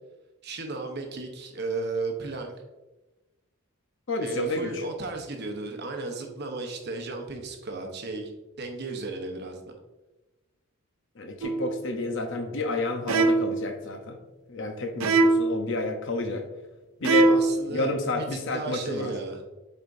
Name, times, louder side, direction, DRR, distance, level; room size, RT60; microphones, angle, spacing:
voice 1, 0.4-2.5 4.2-8.3 8.6-9.6 17.3-19.4, right 3 dB, 50° right, 3 dB, 0.9 m, -34 dB
voice 2, 4.1-4.8 11.2-14.2 14.5-16.4 17.0-17.4 17.7-19.1, left 2 dB, 60° left, 4 dB, 0.8 m, -30 dB
sound 1, 11.4-11.8 13.1-13.7 15.0-15.6 17.0-17.6, right 3 dB, 80° right, 0.5 m, -21 dB
8.1 x 4.4 x 2.6 m, 1.1 s
head